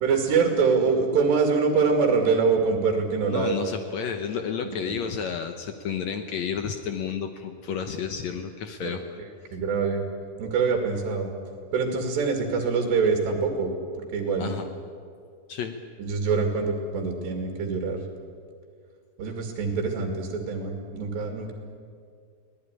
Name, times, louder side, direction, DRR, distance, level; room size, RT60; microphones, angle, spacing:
voice 1, 0.0-3.6 4.4-4.5 4.8-5.0 8.8-10.0 10.4-11.3 11.7-13.7 14.1-14.5 16.0-18.0 19.2-21.5, right 5 dB, 80° right, 3 dB, 4.5 m, -24 dB
voice 2, 3.3-9.2 14.4-14.6 15.5-15.7, left 7 dB, 85° left, 6 dB, 1.5 m, -31 dB
24.5 x 17.5 x 10.0 m, 2.2 s
omnidirectional pair, 4.8 m